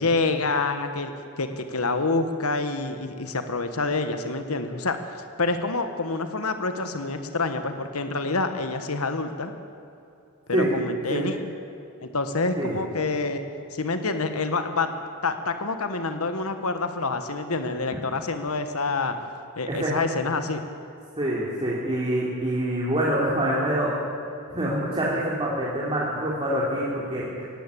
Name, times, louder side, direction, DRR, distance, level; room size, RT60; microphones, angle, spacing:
voice 1, 0.0-5.0 5.4-9.5 10.5-11.4 12.0-13.4 13.7-14.9 15.2-19.1 19.6-20.6, left 3 dB, 90° left, 8 dB, 1.3 m, -27 dB
voice 2, 19.7-20.0 21.2-24.0 24.5-27.5, right 1 dB, 25° right, -6 dB, 3.1 m, -26 dB
19.0 x 17.0 x 8.5 m, 2.7 s
head